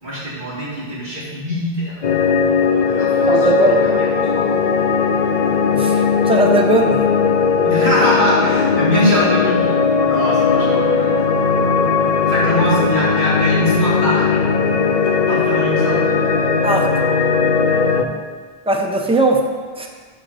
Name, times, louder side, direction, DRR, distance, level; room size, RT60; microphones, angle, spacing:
voice 1, 0.0-2.0 2.9-3.9 4.3-4.6 7.6-9.7 10.0-11.2 12.3-14.2 15.3-16.0, equal, 50° right, -9 dB, 2.6 m, -22 dB
sound 1, 2.0-18.0, left 5 dB, 55° left, 0.6 m, -17 dB
voice 2, 3.3-3.8 5.7-7.0 16.6-16.9 18.7-19.4 19.8-19.9, right 2 dB, 5° right, 1 dB, 0.6 m, -18 dB
7.7 x 3.7 x 6.5 m, 1.5 s
omnidirectional pair, 1.0 m